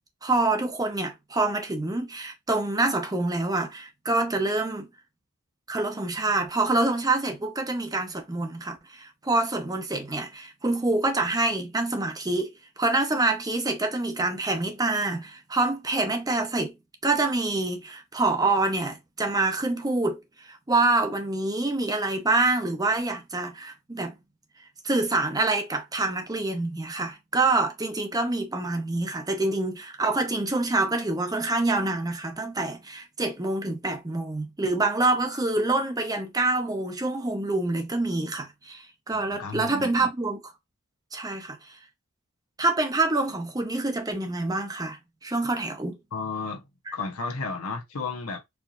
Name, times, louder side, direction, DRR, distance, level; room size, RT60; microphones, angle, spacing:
voice 1, 0.2-4.9 5.7-16.7 17.0-24.2 24.8-40.4 41.1-41.6 42.6-46.0 46.9-47.0, right 2 dB, 15° right, 0.7 m, -26 dB
voice 2, 39.1-40.1 46.1-46.6 46.9-48.4, left 4 dB, 85° left, 0.9 m, -33 dB
4.6 x 2.7 x 2.4 m
head